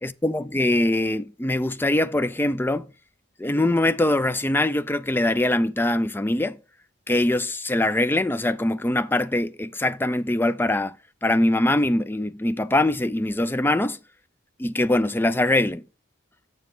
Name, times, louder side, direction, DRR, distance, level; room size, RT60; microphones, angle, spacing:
voice 1, 0.0-2.9 3.4-6.6 7.1-11.0 11.2-14.0 14.6-15.8, left 1 dB, 10° left, 0.4 m, -23 dB
7.5 x 7.4 x 3.8 m
head